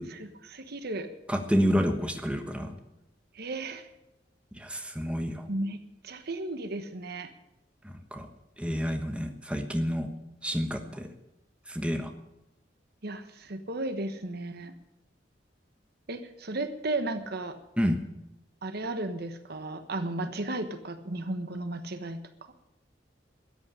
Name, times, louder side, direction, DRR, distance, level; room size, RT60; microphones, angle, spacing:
voice 1, 0.1-1.1 3.3-3.9 5.5-5.8 6.0-7.3 13.0-14.7 16.1-17.6 18.6-22.2, right 2 dB, 60° right, 9 dB, 1.2 m, -34 dB
voice 2, 1.3-2.7 4.6-5.4 7.8-8.3 8.6-10.1 10.4-11.1 11.7-12.1 17.8-18.0, equal, 5° right, 5 dB, 1.3 m, -29 dB
13.5 x 8.4 x 9.9 m, 0.88 s
head